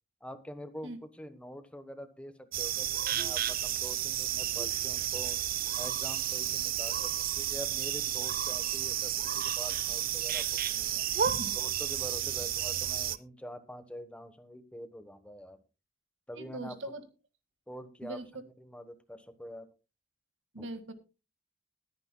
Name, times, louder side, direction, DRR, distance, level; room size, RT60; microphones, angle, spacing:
voice 1, 0.2-0.9 1.2-5.4 5.7-11.1 11.5-15.6 16.3-16.7 17.7-18.2 18.6-19.7 20.6-20.7, equal, 5° left, 10 dB, 1.1 m, -45 dB
sound 1, 2.5-13.2, right 11 dB, 50° right, 0.6 m, -32 dB
voice 2, 11.2-11.6 16.3-17.0 18.0-18.3 20.5-20.9, right 1 dB, 75° right, 9 dB, 1.9 m, -40 dB
21.0 x 9.8 x 2.2 m, 0.29 s
head